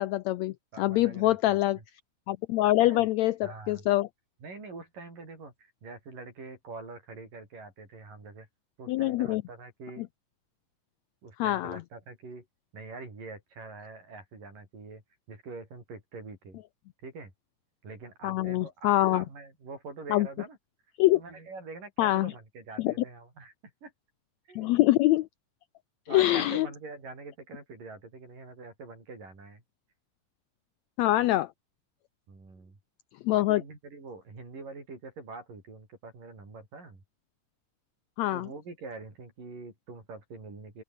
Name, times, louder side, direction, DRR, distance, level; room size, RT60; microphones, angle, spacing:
voice 1, 0.0-1.8 2.3-4.1 8.9-9.4 10.0-10.1 11.4-11.8 18.2-19.2 20.1-20.3 21.0-21.2 22.0-22.3 22.8-22.9 24.5-25.3 26.1-26.7 31.0-31.5 33.2-33.6 38.2-38.5, left 16 dB, 90° left, 1.6 m, -24 dB
voice 2, 0.7-1.6 2.9-3.0 3.4-3.8 4.4-8.5 8.8-10.1 11.2-12.5 12.7-15.0 15.3-16.6 17.0-17.3 17.8-20.6 21.1-23.9 24.5-24.7 26.1-29.6 32.3-32.8 33.3-37.0 38.3-40.8, right 3 dB, 80° right, 9.7 m, -44 dB
open air
omnidirectional pair, 3.8 m